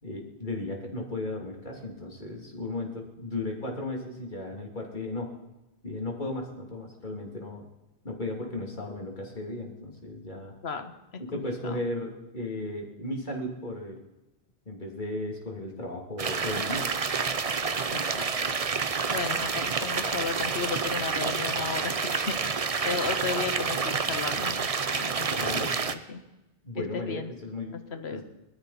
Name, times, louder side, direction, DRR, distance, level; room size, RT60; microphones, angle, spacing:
voice 1, 0.0-5.3 5.8-7.6 8.0-10.5 11.2-14.0 14.7-16.9 25.4-25.7 26.6-27.8 28.1-28.2, left 2 dB, 45° left, 0 dB, 3.1 m, -35 dB
voice 2, 11.3-11.8 17.9-18.3 19.1-25.6 25.9-26.2 26.9-27.3 27.9-28.2, left 5 dB, 80° left, 8 dB, 1.5 m, -35 dB
sound 1, 16.2-25.9, right 5 dB, 40° right, 0.8 m, -29 dB
20.5 x 13.0 x 4.2 m, 0.97 s
omnidirectional pair, 1.1 m